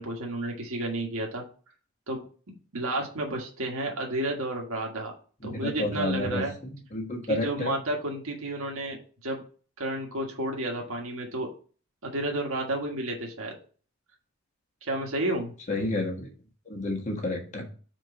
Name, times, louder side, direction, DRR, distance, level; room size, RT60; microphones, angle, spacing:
voice 1, 0.0-1.4 2.1-5.1 5.4-6.5 7.3-9.0 9.2-9.4 9.8-11.5 12.0-13.5 14.8-15.5, right 1 dB, 75° right, 0 dB, 1.6 m, -31 dB
voice 2, 5.4-6.4 6.9-7.7 15.7-16.3 16.7-17.7, left 2 dB, 35° left, 1 dB, 1.5 m, -30 dB
4.5 x 4.5 x 5.5 m, 0.40 s
head